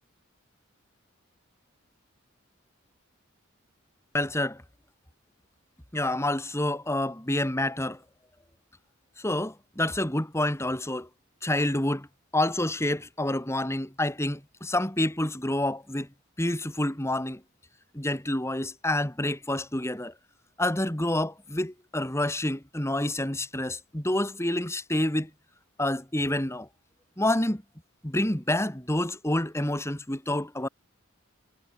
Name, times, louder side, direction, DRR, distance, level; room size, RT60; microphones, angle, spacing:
voice 1, 4.1-4.6 5.9-8.0 9.2-11.1 11.4-12.1 12.3-16.1 16.4-17.4 17.9-20.1 20.6-25.3 25.8-26.7 27.2-27.6 28.0-30.7, left 1 dB, 15° left, 2.3 m, -28 dB
head